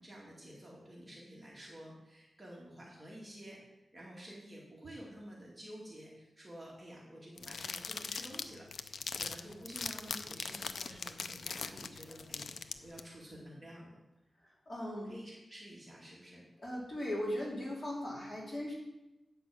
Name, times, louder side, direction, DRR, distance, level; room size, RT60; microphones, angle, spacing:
voice 1, 0.0-3.6 3.9-14.0 15.0-16.4, equal, 20° right, -5 dB, 2.3 m, -50 dB
sound 1, 7.4-13.0, left 5 dB, 70° left, 0.5 m, -41 dB
voice 2, 14.7-15.1 16.6-18.7, left 1 dB, 35° left, -4 dB, 2.8 m, -38 dB
9.1 x 6.0 x 7.1 m, 0.98 s
wide cardioid pair, 135°, 0 cm